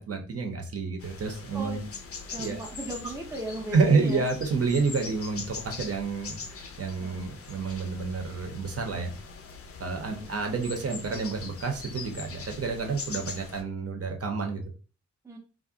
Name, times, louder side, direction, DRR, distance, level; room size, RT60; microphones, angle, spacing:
voice 1, 0.0-1.8 2.4-2.6 3.7-9.1 9.8-14.6, right 4 dB, 50° right, 3 dB, 0.6 m, -29 dB
sound 1, 1.0-13.6, left 4 dB, 50° left, 0.5 m, -42 dB
voice 2, 1.5-2.0 2.3-4.2 7.0-7.2 10.1-10.3 15.2-15.4, right 2 dB, 10° right, 1 dB, 0.5 m, -37 dB
2.4 x 2.1 x 3.7 m, 0.36 s
wide cardioid pair, 150°, 31 cm